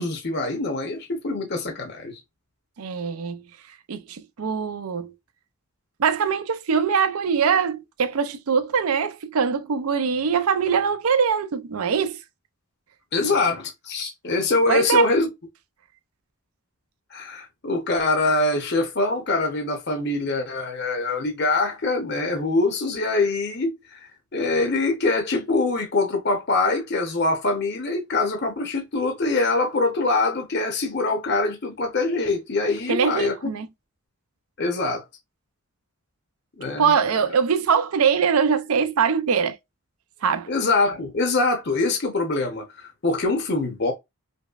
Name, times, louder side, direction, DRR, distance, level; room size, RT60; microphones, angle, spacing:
voice 1, 0.0-2.2 13.1-15.3 17.1-33.3 34.6-35.0 36.6-36.9 40.5-43.9, left 3 dB, 50° left, 0.7 m, -24 dB
voice 2, 2.8-3.4 3.9-5.1 6.0-12.2 14.7-15.1 32.9-33.7 36.8-39.6 40.2-40.5, right 6 dB, 80° right, 0.5 m, -22 dB
5.2 x 2.0 x 2.3 m
head